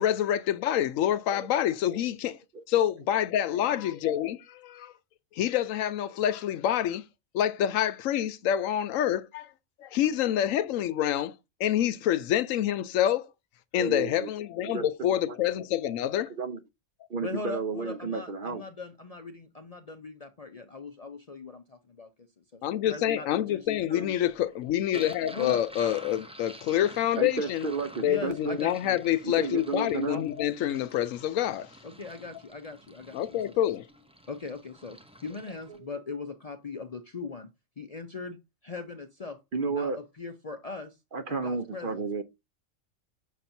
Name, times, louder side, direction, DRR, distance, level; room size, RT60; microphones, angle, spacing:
voice 1, 0.0-2.4 2.7-4.9 5.3-7.0 7.3-9.5 9.8-11.3 11.6-13.3 13.7-16.3 22.6-27.6 28.0-31.7 33.1-33.9, left 11 dB, 80° left, 1.0 m, -27 dB
voice 2, 13.8-14.3 14.6-15.4 16.4-16.6 17.1-18.6 23.7-24.0 27.2-28.6 29.2-30.2 39.5-40.0 41.1-42.2, right 4 dB, 50° right, 0.8 m, -32 dB
voice 3, 17.2-22.1 22.5-22.6 22.9-24.1 24.9-25.6 28.0-29.0 31.8-33.5 34.3-37.5 37.8-38.4 38.6-39.4 39.7-41.0 41.3-42.1, left 4 dB, 45° left, 0.5 m, -40 dB
sound 1, 24.0-35.8, equal, 10° right, 0.4 m, -50 dB
6.9 x 5.8 x 2.6 m
omnidirectional pair, 1.4 m